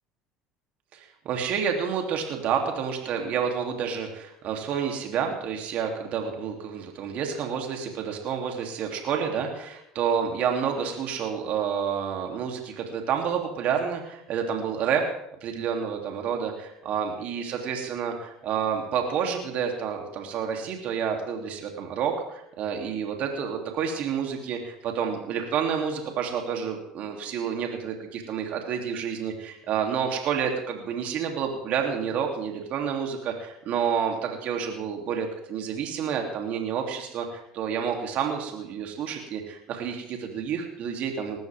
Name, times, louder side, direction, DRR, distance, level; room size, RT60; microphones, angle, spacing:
voice 1, 0.9-15.0 15.4-41.4, right 7 dB, 60° right, 2 dB, 3.0 m, -29 dB
19.5 x 14.0 x 3.6 m, 0.79 s
hypercardioid pair, 80°, 3 cm